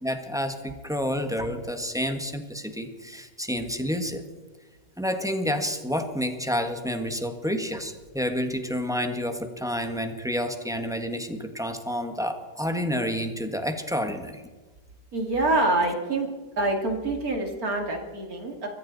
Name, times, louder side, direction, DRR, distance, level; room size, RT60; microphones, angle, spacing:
voice 1, 0.0-4.2 5.0-14.4, equal, ahead, 6 dB, 1.3 m, -29 dB
voice 2, 15.1-16.3 16.6-18.7, right 2 dB, 55° right, 2 dB, 2.8 m, -26 dB
23.0 x 14.5 x 4.1 m, 1.3 s
omnidirectional pair, 1.9 m